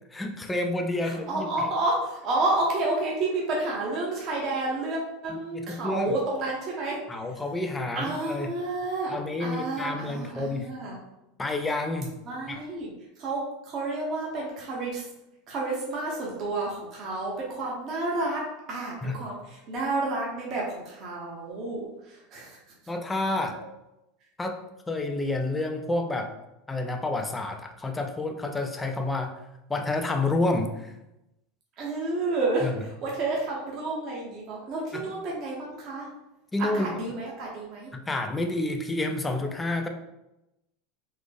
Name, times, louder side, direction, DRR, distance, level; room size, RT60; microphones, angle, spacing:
voice 1, 0.1-1.5 5.5-6.1 7.1-8.5 9.1-10.7 11.4-12.1 12.5-12.6 19.0-19.1 22.9-23.6 24.4-24.6 24.9-26.3 26.7-29.3 29.7-30.9 32.6-32.7 34.9-35.0 36.5-36.9 38.1-39.9, left 2 dB, 10° left, 4 dB, 0.3 m, -29 dB
voice 2, 1.0-7.0 7.9-11.0 12.2-15.0 15.5-22.6 31.8-36.1 36.6-37.9, right 2 dB, 35° right, -3 dB, 0.7 m, -30 dB
3.7 x 2.0 x 3.4 m, 0.92 s
supercardioid pair, 155°, 0 cm